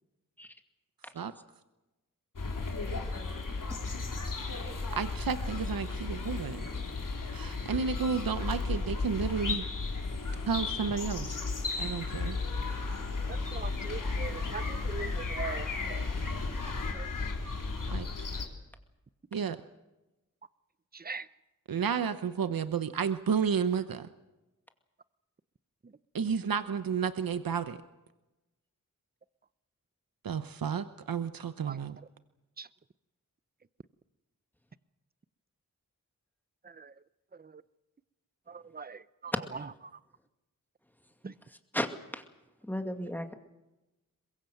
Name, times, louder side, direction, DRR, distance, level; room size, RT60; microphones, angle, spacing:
sound 1, 2.4-18.5, left 3 dB, 65° left, 3.6 m, -34 dB
voice 1, 5.0-6.6 7.3-9.6 10.5-11.4 11.8-12.3 17.9-18.1 19.3-19.6 21.7-24.1 26.1-27.8 30.2-32.0, right 6 dB, 85° right, 11 dB, 0.9 m, -31 dB
voice 2, 13.3-16.1 16.9-17.1 20.9-21.3 31.7-31.8 32.6-32.7 36.8-36.9 38.5-39.3 41.2-41.3, right 5 dB, 25° right, 16 dB, 0.8 m, -41 dB
voice 3, 41.7-42.2 42.6-43.3, equal, 5° left, 6 dB, 2.2 m, -34 dB
23.0 x 22.0 x 7.8 m, 1.0 s
wide cardioid pair, 70°, 34 cm